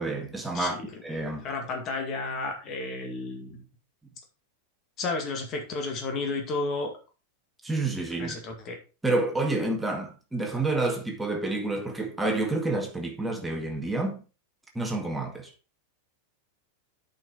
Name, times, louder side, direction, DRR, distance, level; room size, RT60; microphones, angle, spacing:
voice 1, 0.0-1.5 7.6-8.4 9.0-14.2 14.8-15.5, right 2 dB, 5° right, 1.9 m, -29 dB
voice 2, 0.5-0.9 1.4-3.6 5.0-6.9 8.2-8.8, left 3 dB, 35° left, 2.2 m, -32 dB
8.3 x 5.7 x 4.2 m
figure-of-eight pair, 90°, 0 cm